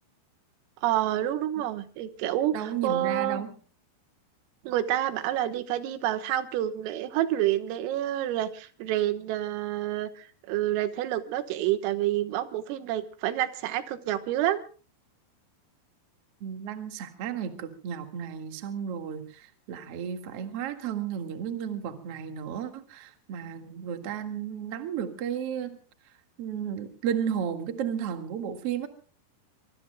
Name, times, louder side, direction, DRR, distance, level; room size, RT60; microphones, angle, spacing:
voice 1, 0.8-3.4 4.7-14.6, right 13 dB, 90° right, 10 dB, 3.9 m, -28 dB
voice 2, 2.5-3.5 16.4-25.8 26.4-28.9, right 8 dB, 65° right, 6 dB, 1.5 m, -33 dB
24.5 x 23.5 x 2.2 m, 0.38 s
omnidirectional pair, 5.8 m